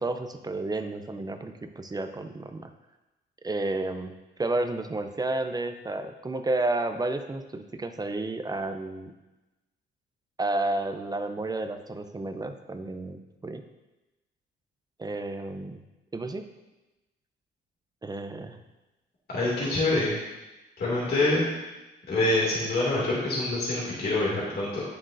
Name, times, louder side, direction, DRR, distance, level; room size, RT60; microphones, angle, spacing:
voice 1, 0.0-2.7 3.4-9.1 10.4-13.6 15.0-15.8 16.1-16.4 18.0-18.6, right 2 dB, 20° right, 8 dB, 0.6 m, -31 dB
voice 2, 19.3-20.2 20.8-21.5 22.1-24.8, left 2 dB, 55° left, -6 dB, 2.5 m, -26 dB
8.7 x 7.3 x 2.6 m, 1.0 s
cardioid pair, 90°, 20 cm